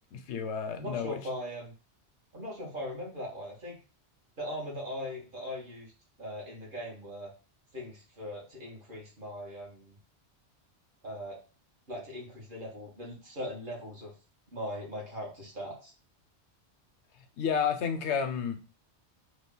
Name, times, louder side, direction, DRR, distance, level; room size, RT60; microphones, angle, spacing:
voice 1, 0.1-1.2 17.4-18.6, left 7 dB, 80° left, 7 dB, 0.9 m, -31 dB
voice 2, 0.8-1.7 2.3-3.8 4.4-5.9 6.2-7.3 7.7-9.9 11.0-11.4 11.9-14.1 14.5-15.9, equal, 50° right, -3 dB, 1.5 m, -40 dB
3.3 x 2.4 x 3.8 m, 0.34 s
omnidirectional pair, 1.2 m